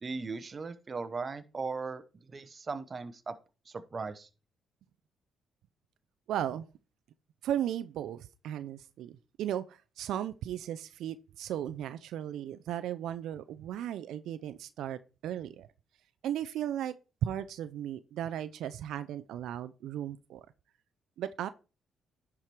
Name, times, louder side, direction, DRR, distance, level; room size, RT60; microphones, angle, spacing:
voice 1, 0.0-2.0 2.3-3.3 3.7-4.3, right 4 dB, 35° right, 0.9 m, -38 dB
voice 2, 6.3-6.7 7.4-15.7 16.2-16.9 17.2-20.5 21.2-21.5, right 11 dB, 80° right, 0.5 m, -36 dB
11.0 x 4.9 x 4.5 m
cardioid pair, 90°, 0 cm